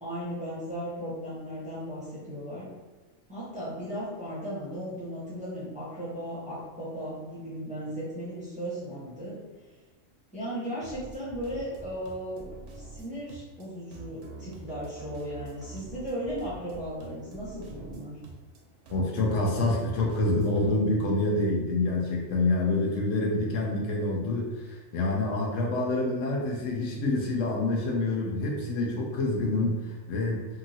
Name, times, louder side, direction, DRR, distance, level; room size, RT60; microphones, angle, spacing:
voice 1, 0.0-2.7 3.3-9.4 10.3-12.5 12.7-18.2, equal, 5° right, -10 dB, 0.8 m, -36 dB
sound 1, 10.8-20.7, right 3 dB, 75° right, 0.9 m, -45 dB
voice 2, 18.9-30.5, left 2 dB, 75° left, -2 dB, 0.9 m, -27 dB
2.9 x 2.7 x 2.6 m, 1.2 s
omnidirectional pair, 1.4 m